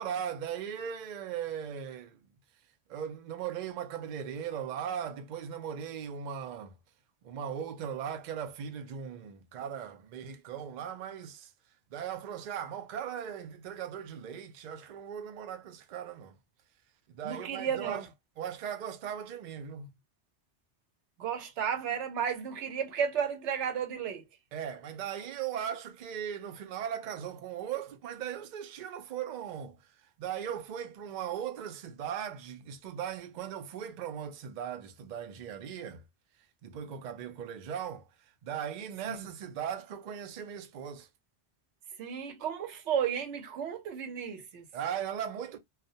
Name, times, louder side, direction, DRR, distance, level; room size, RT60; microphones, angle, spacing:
voice 1, 0.0-2.2 2.9-6.7 7.2-11.5 11.9-16.4 17.1-18.1 18.4-19.9 24.5-29.8 30.2-36.0 36.6-38.0 38.4-41.1 44.7-45.6, right 8 dB, 60° right, 0.5 m, -38 dB
voice 2, 17.2-18.1 21.2-24.3 39.0-39.3 42.0-44.7, right 7 dB, 90° right, 1.0 m, -33 dB
2.3 x 2.1 x 2.6 m
omnidirectional pair, 1.2 m